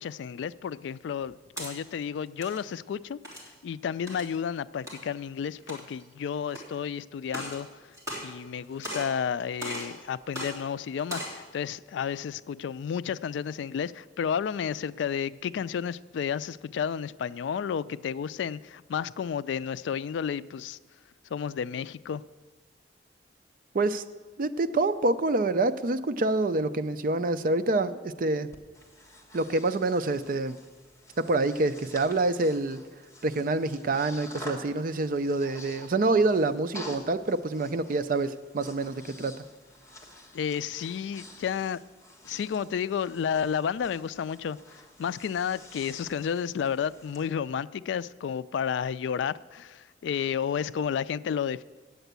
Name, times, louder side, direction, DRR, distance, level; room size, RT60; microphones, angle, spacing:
voice 1, 0.0-3.2 3.6-7.7 8.2-20.8 21.3-22.2 40.3-41.8 42.3-44.6 45.0-51.6, left 7 dB, 75° left, 17 dB, 0.3 m, -31 dB
sound 1, 1.4-1.7 2.3-2.6 3.2-3.5 4.1-4.3 4.9-5.0 5.6-6.0 6.5-6.6 7.2-7.6 7.9-8.6 8.8-9.2 9.6-9.9 10.3-10.5 11.0-11.4, equal, 15° right, 2.9 m, -37 dB
voice 2, 24.4-28.5 29.3-30.6 31.2-32.8 33.2-39.3, right 2 dB, 50° right, 11 dB, 0.5 m, -26 dB
Breathing, 28.5-47.2, left 1 dB, 15° left, 1.3 m, -49 dB
9.1 x 7.9 x 8.1 m, 1.3 s
head